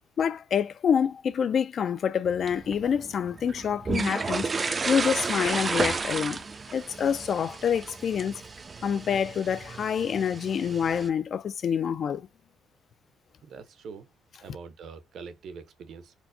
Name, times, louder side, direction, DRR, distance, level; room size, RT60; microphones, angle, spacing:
voice 1, 0.2-6.4 6.7-8.4 8.8-12.3, left 7 dB, 50° left, 0.3 m, -27 dB
sound 1, 2.2-11.1, right 4 dB, 25° right, 0.4 m, -33 dB
voice 2, 13.4-14.1 14.4-16.1, right 5 dB, 65° right, 0.7 m, -44 dB
4.4 x 2.0 x 2.6 m
cardioid pair, 135°, 0 cm